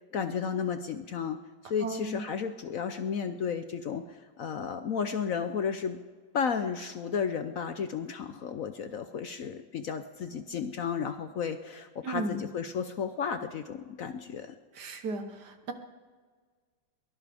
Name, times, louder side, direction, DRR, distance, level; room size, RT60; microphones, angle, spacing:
voice 1, 0.1-1.4 1.6-6.0 6.3-14.6, left 6 dB, 60° left, 9 dB, 1.0 m, -33 dB
voice 2, 1.8-2.2 12.0-12.4 14.7-15.7, right 2 dB, 65° right, 7 dB, 1.8 m, -35 dB
22.5 x 18.0 x 3.5 m, 1.5 s
omnidirectional pair, 2.0 m